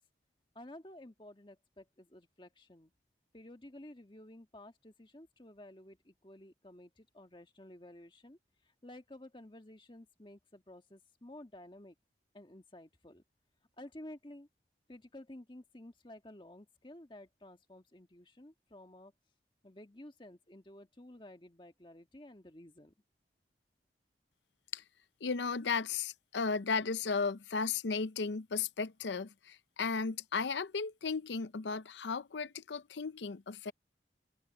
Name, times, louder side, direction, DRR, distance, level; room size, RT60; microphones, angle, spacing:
voice 1, 0.5-2.9 3.3-8.4 8.6-11.9 12.3-13.2 13.8-14.5 14.9-19.1 19.6-22.9, left 1 dB, 25° left, 1.5 m, -53 dB
voice 2, 25.2-33.7, left 5 dB, 85° left, 0.6 m, -35 dB
head